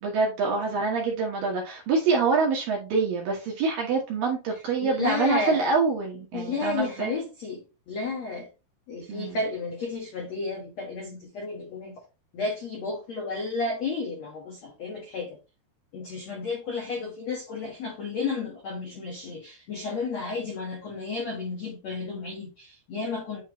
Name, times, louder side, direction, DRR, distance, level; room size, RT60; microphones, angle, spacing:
voice 1, 0.0-7.1 9.1-9.4, right 4 dB, 65° right, 2.4 m, -26 dB
voice 2, 4.8-5.6 6.3-8.5 8.9-11.9 12.3-15.4 15.9-23.4, left 4 dB, 75° left, 1.5 m, -32 dB
10.0 x 3.6 x 3.0 m
omnidirectional pair, 5.5 m